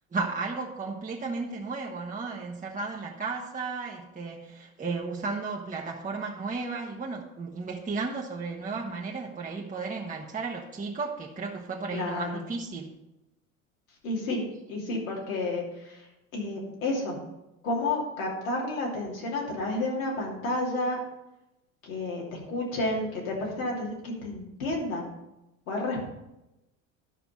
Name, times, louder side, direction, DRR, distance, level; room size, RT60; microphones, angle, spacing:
voice 1, 0.1-12.9, right 4 dB, 20° right, -2 dB, 1.3 m, -34 dB
voice 2, 11.9-12.4 14.0-16.0 16.3-17.2 17.6-21.0 21.8-25.1 25.7-26.1, left 2 dB, 80° left, -2 dB, 2.9 m, -31 dB
12.0 x 5.8 x 5.5 m, 0.94 s
hypercardioid pair, 70°, 41 cm